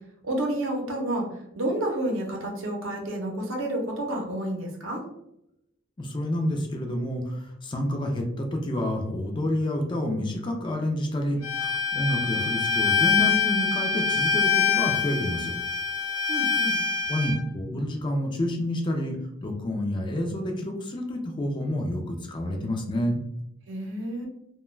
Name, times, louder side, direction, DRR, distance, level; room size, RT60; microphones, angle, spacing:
voice 1, 0.2-1.3 1.5-5.0 16.3-16.8 23.7-24.3, right 1 dB, 75° right, 0 dB, 0.7 m, -29 dB
voice 2, 6.0-15.5 17.1-19.2 19.4-23.2, left 1 dB, 25° left, 2 dB, 0.4 m, -29 dB
Bowed string instrument, 11.4-17.4, left 5 dB, 85° left, 0.7 m, -25 dB
2.2 x 2.2 x 3.1 m, 0.81 s
head